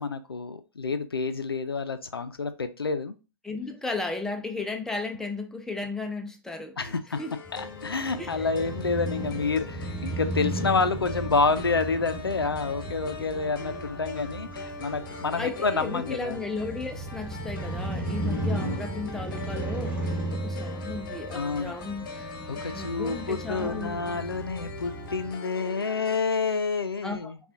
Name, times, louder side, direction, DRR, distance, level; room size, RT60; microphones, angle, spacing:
voice 1, 0.0-3.1 6.8-7.2 7.5-16.4 18.2-18.8 21.3-21.7 22.5-27.4, left 4 dB, 85° left, 0.5 m, -28 dB
voice 2, 3.4-7.3 8.2-8.4 15.4-20.0 20.3-22.1 22.5-24.2 27.0-27.3, left 3 dB, 5° left, 0.5 m, -35 dB
sound 1, 7.1-26.2, left 4 dB, 55° left, 0.9 m, -42 dB
Crow / Motorcycle, 7.4-25.3, right 2 dB, 10° right, 1.2 m, -35 dB
5.4 x 2.4 x 2.5 m
figure-of-eight pair, 110°, 12 cm